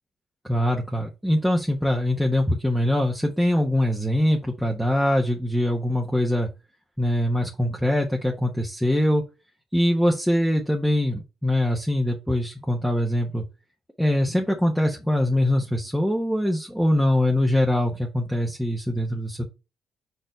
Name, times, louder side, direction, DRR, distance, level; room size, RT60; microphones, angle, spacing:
voice 1, 0.5-6.5 7.0-9.2 9.7-13.4 14.0-19.4, left 1 dB, ahead, -1 dB, 1.3 m, -23 dB
4.9 x 4.6 x 4.5 m, 0.27 s
cardioid pair, 90°, 0 cm